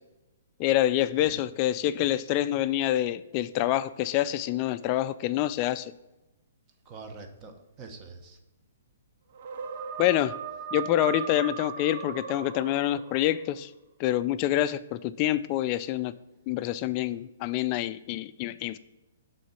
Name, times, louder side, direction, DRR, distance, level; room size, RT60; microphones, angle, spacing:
voice 1, 0.6-5.9 10.0-10.3 10.7-13.7 14.0-16.1 16.5-18.8, left 13 dB, 35° left, 13 dB, 0.3 m, -26 dB
voice 2, 6.9-8.4, right 4 dB, 30° right, 6 dB, 1.0 m, -45 dB
sound 1, 9.3-13.4, right 8 dB, 50° right, 0.6 m, -38 dB
6.4 x 3.8 x 5.7 m, 0.98 s
hypercardioid pair, 140°, 0 cm